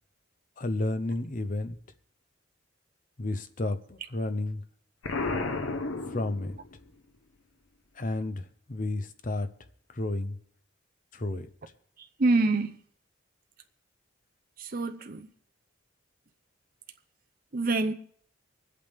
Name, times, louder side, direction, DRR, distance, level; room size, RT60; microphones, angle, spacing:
voice 1, 0.6-1.8 3.2-4.6 6.1-6.6 7.9-9.5 9.9-10.4 11.1-11.5, left 2 dB, 40° left, 0.8 m, -31 dB
Explosion, 5.0-6.9, left 3 dB, 90° left, 1.0 m, -32 dB
voice 2, 12.0-12.7 14.6-15.3 17.5-17.9, right 3 dB, 45° right, 0.7 m, -26 dB
24.0 x 8.4 x 3.5 m
head